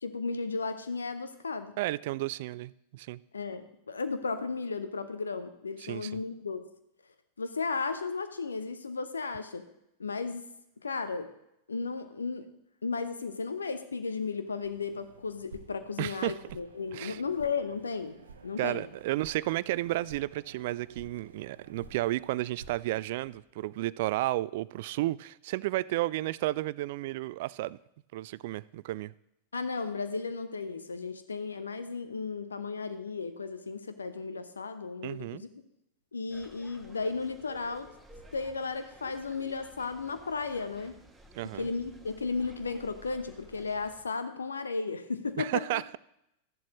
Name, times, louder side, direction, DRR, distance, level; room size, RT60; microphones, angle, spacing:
voice 1, 0.0-1.7 3.3-6.6 7.4-9.7 10.0-10.4 10.8-11.3 11.7-12.5 12.8-18.1 18.4-18.8 29.5-35.5 36.1-37.9 38.3-41.0 41.6-45.8, left 4 dB, 75° left, 10 dB, 0.8 m, -34 dB
voice 2, 1.8-3.2 5.8-6.1 16.0-16.4 16.9-17.2 18.6-27.8 28.1-29.1 35.0-35.4 41.3-41.7 45.4-46.0, right 17 dB, 50° right, 21 dB, 0.3 m, -32 dB
sound 1, 14.6-23.4, right 4 dB, 70° right, 0.9 m, -53 dB
sound 2, 36.3-44.0, right 1 dB, 10° right, 1.4 m, -54 dB
13.5 x 11.0 x 3.1 m, 0.80 s
figure-of-eight pair, 90°, 0 cm